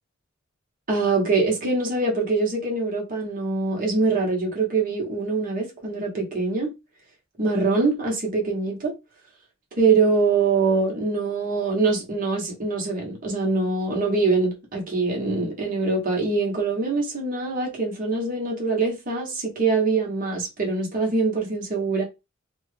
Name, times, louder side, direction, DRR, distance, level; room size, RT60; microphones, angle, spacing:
voice 1, 0.9-6.7 7.4-8.9 9.8-22.0, right 3 dB, 45° right, 1.1 m, -24 dB
2.9 x 2.2 x 3.2 m
head